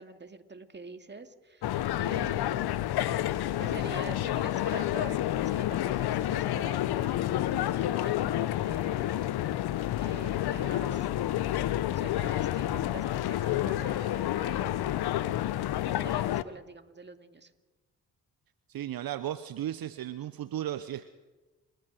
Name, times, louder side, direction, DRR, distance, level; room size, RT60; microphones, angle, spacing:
voice 1, 0.0-9.6 10.0-11.1 11.8-15.1 15.6-17.5, right 3 dB, 25° right, 7 dB, 2.2 m, -46 dB
sound 1, 1.6-16.4, left 13 dB, 65° left, 0.8 m, -29 dB
voice 2, 18.7-21.1, right 12 dB, 60° right, 12 dB, 0.8 m, -35 dB
29.5 x 14.0 x 6.4 m, 1.2 s
hypercardioid pair, 40°, 41 cm